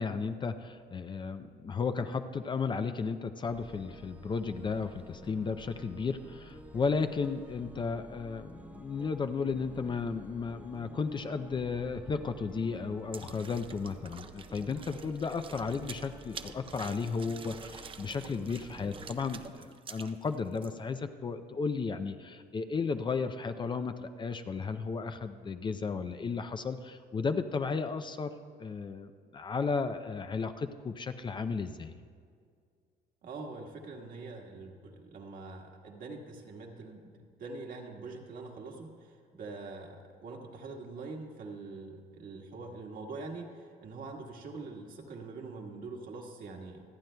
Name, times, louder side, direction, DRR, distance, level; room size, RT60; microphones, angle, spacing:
voice 1, 0.0-31.9, left 5 dB, 30° left, 9 dB, 0.5 m, -34 dB
sound 1, 3.5-19.5, right 1 dB, 10° right, 1.0 m, -50 dB
sound 2, 13.1-20.7, right 6 dB, 30° right, 0.5 m, -48 dB
voice 2, 33.2-46.8, right 3 dB, 55° right, 1 dB, 1.6 m, -44 dB
26.5 x 9.1 x 2.2 m, 2.2 s
cardioid pair, 110°, 17 cm